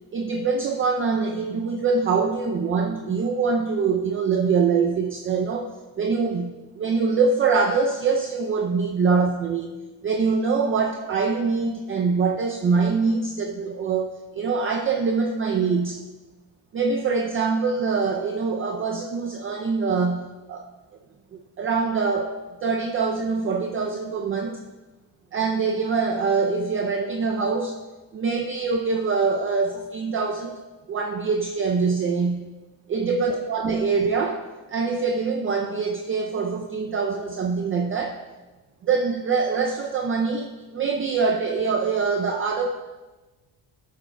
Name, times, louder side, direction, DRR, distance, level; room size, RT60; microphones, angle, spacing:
voice 1, 0.1-5.7 6.0-9.7 10.0-16.0 16.7-20.7 21.3-22.4 22.6-24.6 25.3-27.8 28.1-30.6 30.9-32.5 32.9-38.2 38.8-42.7, right 4 dB, 30° right, 4 dB, 0.4 m, -24 dB
12.5 x 6.6 x 2.2 m, 1.2 s
cardioid pair, 130°, 41 cm